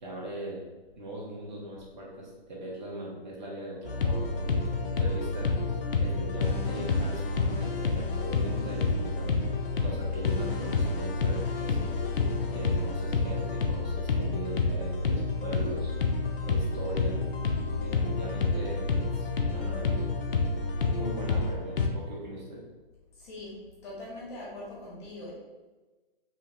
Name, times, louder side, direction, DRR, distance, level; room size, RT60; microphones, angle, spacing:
voice 1, 0.0-0.7 1.0-5.5 6.0-9.4 9.8-11.9 12.5-15.9 16.4-17.2 17.8-20.1 20.5-20.6 21.0-22.6, right 1 dB, 50° right, -4 dB, 1.0 m, -40 dB
sound 1, 3.9-21.9, left 3 dB, 70° left, 0.5 m, -29 dB
voice 2, 23.2-23.5 23.8-25.3, left 2 dB, 30° left, -6 dB, 1.0 m, -41 dB
2.8 x 2.8 x 2.7 m, 1.2 s
figure-of-eight pair, 140°, 29 cm